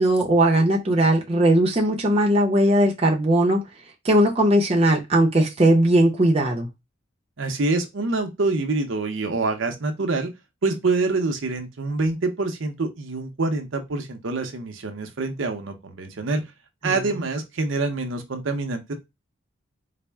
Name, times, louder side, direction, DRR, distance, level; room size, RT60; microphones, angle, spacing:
voice 1, 0.0-3.6 4.0-6.7 16.8-17.2, right 1 dB, 30° right, 0.6 m, -19 dB
voice 2, 7.4-10.3 10.6-16.4 16.8-18.9, right 3 dB, 75° right, 0.6 m, -26 dB
4.1 x 2.0 x 3.4 m
head